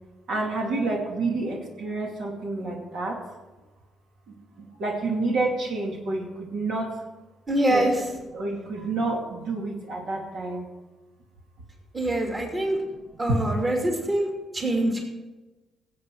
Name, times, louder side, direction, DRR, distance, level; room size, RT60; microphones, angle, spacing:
voice 1, 0.3-3.2 4.6-6.9 7.7-7.8 8.3-10.7 13.3-13.4, right 2 dB, 70° right, -1 dB, 2.6 m, -28 dB
voice 2, 7.5-8.1 11.9-12.8 13.2-15.0, right 1 dB, 25° right, 1 dB, 2.7 m, -24 dB
16.5 x 7.8 x 4.8 m, 1.1 s
cardioid pair, 90°, 0 cm